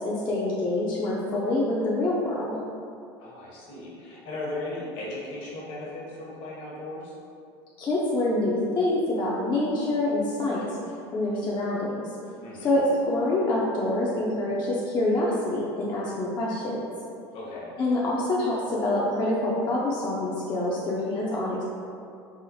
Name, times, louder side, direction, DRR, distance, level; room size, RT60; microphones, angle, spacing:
voice 1, 0.0-2.5 7.8-10.6 11.1-12.0 12.6-16.8 17.8-21.6, left 1 dB, 35° left, -6 dB, 0.6 m, -26 dB
voice 2, 3.2-7.2 12.4-12.8 17.3-17.7, left 2 dB, 60° left, -5 dB, 1.1 m, -37 dB
4.7 x 2.0 x 2.7 m, 2.5 s
hypercardioid pair, 85°, 14 cm